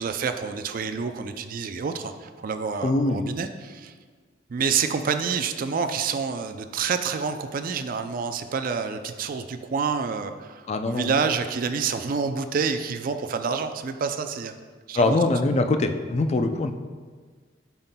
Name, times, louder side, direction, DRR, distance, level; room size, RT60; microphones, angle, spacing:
voice 1, 0.0-3.9 4.5-14.5 14.9-15.2, right 5 dB, 45° right, 8 dB, 0.4 m, -28 dB
voice 2, 2.8-3.2 10.7-11.1 14.9-16.7, left 2 dB, 35° left, 7 dB, 0.4 m, -23 dB
8.9 x 5.6 x 2.2 m, 1.5 s
head